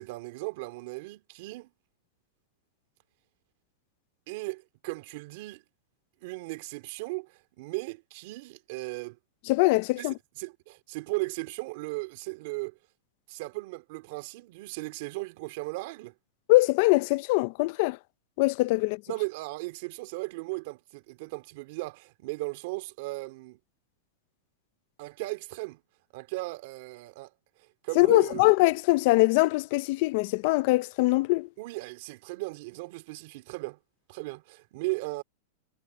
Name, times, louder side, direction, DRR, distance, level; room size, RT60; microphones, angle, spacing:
voice 1, 0.0-1.7 4.3-5.6 6.2-9.2 10.0-12.8 13.3-16.1 19.1-23.6 25.0-25.8 26.1-27.3 27.6-28.4 31.6-33.8 34.1-35.2, right 24 dB, 55° right, 2.7 m, -36 dB
voice 2, 9.5-10.1 16.5-18.0 18.4-19.0 28.0-31.5, left 22 dB, 50° left, 0.6 m, -22 dB
supercardioid pair, 150°, 0 cm